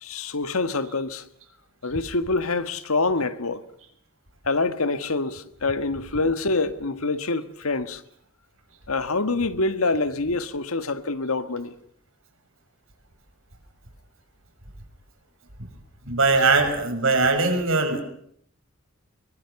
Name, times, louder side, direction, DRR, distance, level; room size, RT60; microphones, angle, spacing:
voice 1, 0.0-1.3 1.8-3.6 4.4-8.0 8.9-11.7, left 3 dB, 85° left, 1.5 m, -26 dB
voice 2, 16.0-18.0, right 3 dB, 70° right, 6.0 m, -20 dB
24.5 x 23.5 x 7.0 m
head